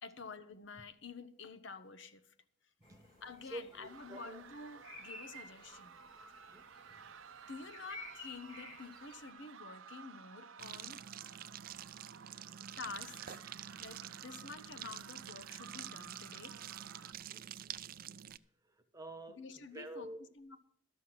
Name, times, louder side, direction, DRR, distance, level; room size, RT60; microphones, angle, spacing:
voice 1, 0.0-2.3 3.2-6.0 7.4-11.0 12.8-13.4 13.8-16.6 19.4-20.6, left 4 dB, 65° left, 0.8 m, -49 dB
sound 1, 2.8-9.3, left 2 dB, 25° left, 2.2 m, -54 dB
voice 2, 3.4-4.4 6.5-7.0 17.3-17.4 18.7-20.2, right 1 dB, 15° right, 1.1 m, -49 dB
sound 2, 3.8-17.1, right 7 dB, 80° right, 0.7 m, -55 dB
sound 3, 10.6-18.4, right 10 dB, 45° right, 0.4 m, -48 dB
13.0 x 6.3 x 7.7 m
head